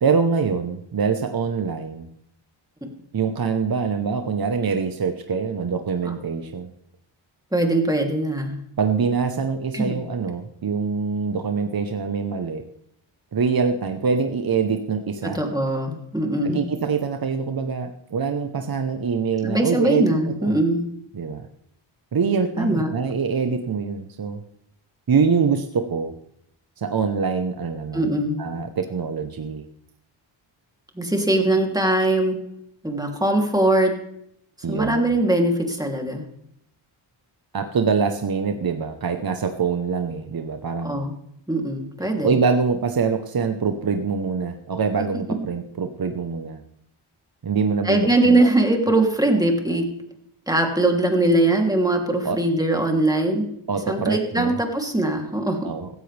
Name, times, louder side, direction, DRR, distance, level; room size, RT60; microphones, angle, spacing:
voice 1, 0.0-2.1 3.1-6.7 8.8-12.6 13.3-15.4 16.5-20.6 21.1-21.5 22.1-24.4 25.1-26.1 26.8-29.7 34.6-35.1 37.5-41.0 42.2-46.6 47.4-48.5 52.2-52.4 53.7-54.6 55.6-55.9, right 5 dB, 45° right, 7 dB, 1.1 m, -24 dB
voice 2, 7.5-8.6 9.7-9.9 15.3-16.6 19.4-20.8 22.6-22.9 27.9-28.4 31.0-32.4 32.8-33.9 34.7-36.2 40.8-41.1 41.5-42.4 47.8-49.8 50.5-53.5 53.9-55.7, right 1 dB, 10° right, 2 dB, 3.0 m, -21 dB
16.0 x 14.0 x 3.4 m, 0.75 s
cardioid pair, 65°, 48 cm